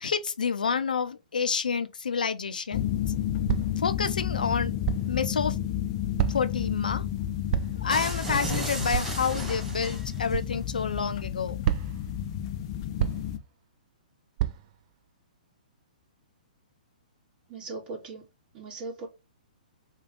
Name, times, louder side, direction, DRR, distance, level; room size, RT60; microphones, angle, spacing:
voice 1, 0.0-2.9 3.8-5.6 6.3-7.1 7.8-11.6, left 6 dB, 75° left, 0.7 m, -29 dB
sound 1, 2.7-13.4, left 10 dB, 40° left, 0.7 m, -31 dB
sound 2, 3.5-3.8 4.8-5.2 6.2-6.6 7.5-7.9 8.9-9.2 10.3-10.5 11.6-12.1 13.0-13.4 14.4-14.8, right 15 dB, 40° right, 0.5 m, -29 dB
sound 3, 7.9-10.4, right 1 dB, 5° right, 2.7 m, -34 dB
voice 2, 17.5-18.2 18.5-19.1, right 3 dB, 25° right, 3.0 m, -38 dB
5.1 x 2.8 x 3.5 m
hypercardioid pair, 125°, 5 cm